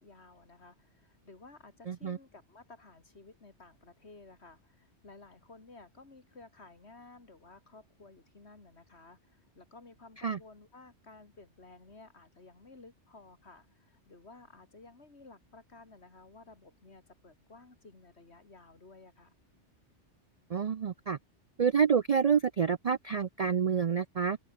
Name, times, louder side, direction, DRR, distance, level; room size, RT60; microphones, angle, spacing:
voice 1, 0.0-19.3, left 3 dB, 65° left, 3.2 m, -55 dB
voice 2, 1.9-2.2 10.2-10.4 20.5-21.2 21.6-24.4, right 7 dB, 50° right, 0.4 m, -28 dB
open air
omnidirectional pair, 1.2 m